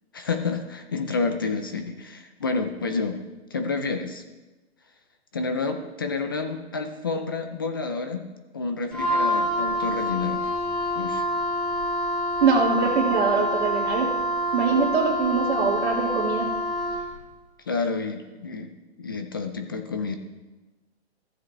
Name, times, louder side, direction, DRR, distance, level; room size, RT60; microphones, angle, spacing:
voice 1, 0.1-3.2 3.5-4.2 5.3-8.3 8.5-10.5 11.0-11.2 17.7-18.7 19.0-20.2, left 4 dB, 20° left, 7 dB, 0.3 m, -29 dB
Wind instrument woodwind instrument, 8.9-17.1, equal, ahead, 2.1 m, -26 dB
voice 2, 12.4-14.1 14.5-16.5, right 4 dB, 75° right, -4 dB, 1.8 m, -23 dB
14.0 x 7.5 x 3.2 m, 1.1 s
hypercardioid pair, 160°, 33 cm